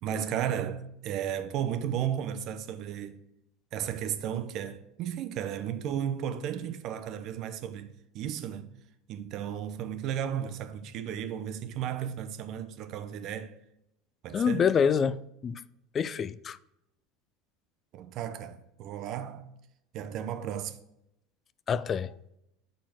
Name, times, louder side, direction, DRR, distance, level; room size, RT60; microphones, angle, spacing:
voice 1, 0.0-3.2 3.7-8.7 9.1-13.5 14.2-14.7 17.9-19.5 19.9-20.8, right 9 dB, 50° right, 0.7 m, -34 dB
voice 2, 14.3-15.6 15.9-16.6 21.7-22.1, left 7 dB, 35° left, 0.3 m, -27 dB
6.5 x 4.2 x 6.1 m
figure-of-eight pair, 75°, 0 cm